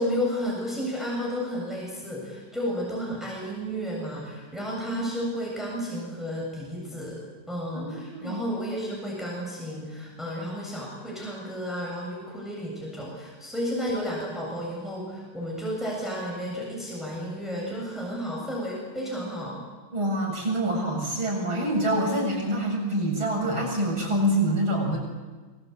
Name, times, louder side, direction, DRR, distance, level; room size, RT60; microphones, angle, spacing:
voice 1, 0.0-7.2 7.5-19.6, equal, ahead, -3 dB, 7.6 m, -32 dB
voice 2, 7.7-8.4 19.9-25.0, right 1 dB, 80° right, 0 dB, 8.4 m, -26 dB
25.5 x 24.5 x 8.3 m, 1.3 s
omnidirectional pair, 2.2 m